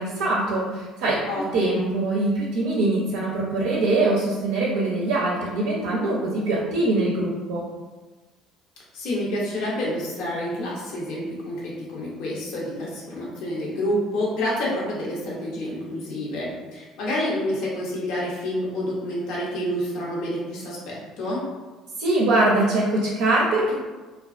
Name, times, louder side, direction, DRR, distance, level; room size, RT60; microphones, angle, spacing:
voice 1, 0.0-7.7 22.0-23.7, right 2 dB, 85° right, -5 dB, 0.5 m, -23 dB
voice 2, 1.3-1.9 8.9-21.4, left 1 dB, 75° left, -4 dB, 0.7 m, -28 dB
2.3 x 2.2 x 2.4 m, 1.2 s
supercardioid pair, 90°, 0 cm